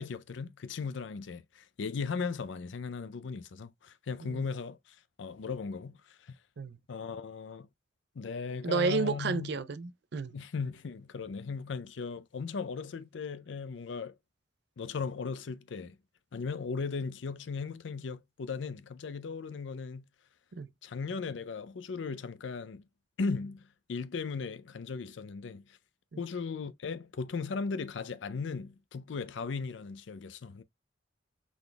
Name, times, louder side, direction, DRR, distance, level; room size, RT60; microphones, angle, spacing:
voice 1, 0.0-6.4 6.9-7.7 8.2-9.5 10.3-14.1 14.8-15.9 16.3-20.0 20.8-22.8 23.2-23.6 23.9-25.8 26.2-30.6, left 5 dB, 80° left, 0.5 m, -37 dB
voice 2, 8.6-10.4 20.5-20.7, right 4 dB, 65° right, 0.5 m, -31 dB
5.9 x 3.5 x 2.2 m
head